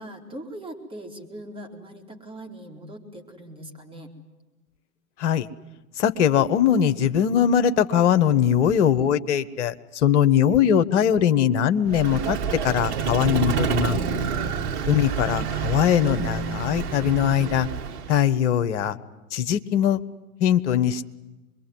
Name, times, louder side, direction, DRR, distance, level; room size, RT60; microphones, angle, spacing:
voice 1, 0.0-4.1, right 1 dB, 10° right, 4 dB, 4.1 m, -41 dB
voice 2, 6.0-12.4 12.6-14.0 14.8-17.7 18.1-19.0 19.3-20.0 20.4-21.1, left 9 dB, 50° left, 10 dB, 1.3 m, -21 dB
Vehicle, 11.9-18.3, right 7 dB, 45° right, 2.5 m, -28 dB
25.5 x 22.5 x 9.5 m, 1.1 s
figure-of-eight pair, 100°, 45 cm